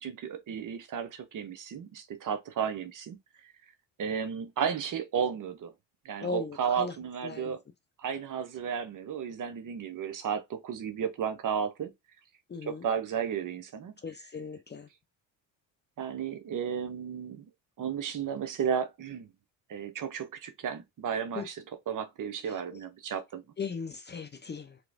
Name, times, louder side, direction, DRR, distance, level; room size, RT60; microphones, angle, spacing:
voice 1, 0.0-3.5 4.0-5.7 6.0-7.6 8.0-11.9 12.7-13.9 16.0-17.5 17.8-19.3 19.7-21.5 21.9-23.4, right 7 dB, 45° right, 0.9 m, -33 dB
voice 2, 6.2-7.0 7.2-7.6 12.5-12.9 14.0-14.9 21.3-21.5 22.4-22.8 23.6-24.8, left 5 dB, 25° left, 0.6 m, -38 dB
3.1 x 3.0 x 2.5 m
supercardioid pair, 85°, 44 cm